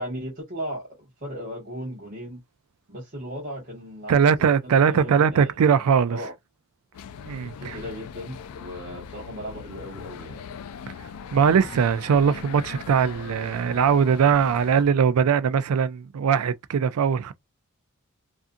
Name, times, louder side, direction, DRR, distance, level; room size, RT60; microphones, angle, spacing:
voice 1, 0.0-2.4 2.9-4.2 4.9-5.5 6.0-6.3 7.6-10.4, equal, 40° right, 0.9 m, -36 dB
voice 2, 4.1-6.2 7.3-7.8 11.3-17.3, right 7 dB, 80° right, 0.4 m, -21 dB
sound 1, 6.9-14.8, left 7 dB, 80° left, 0.3 m, -40 dB
2.5 x 2.4 x 2.5 m
head